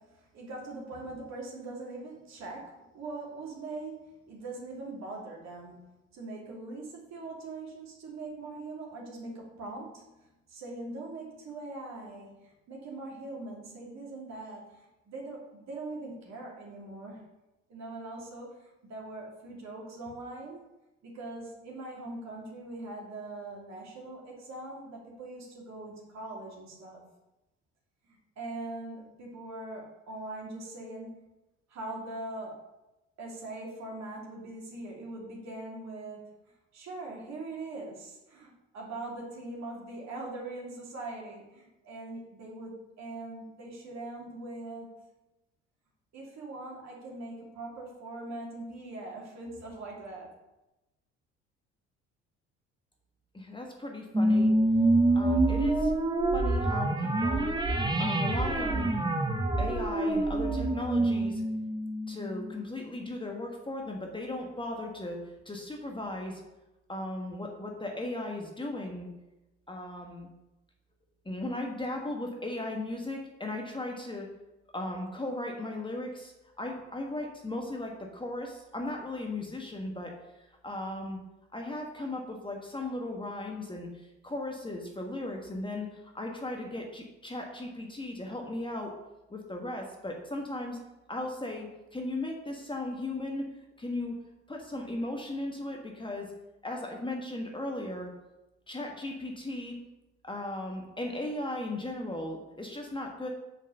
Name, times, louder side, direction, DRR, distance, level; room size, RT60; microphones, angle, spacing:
voice 1, 0.0-10.1 10.5-17.2 17.7-18.6 18.8-20.6 21.0-27.0 28.0-31.1 31.7-32.6 33.2-44.9 46.1-50.3, right 2 dB, 50° right, -3 dB, 2.9 m, -42 dB
voice 2, 53.3-54.5 55.1-55.9 56.3-57.5 58.0-58.9 59.6-61.4 62.1-66.4 66.9-69.1 69.7-70.3 71.2-74.3 74.7-80.1 80.6-81.2 81.5-88.9 89.3-90.8 91.1-93.4 93.8-94.2 94.5-96.3 96.6-98.1 98.7-99.8 100.2-103.3, left 2 dB, 15° left, 1 dB, 1.5 m, -37 dB
sound 1, 54.1-62.9, right 2 dB, 10° right, 1.1 m, -27 dB
7.3 x 5.4 x 5.5 m, 0.98 s
figure-of-eight pair, 50°, 35 cm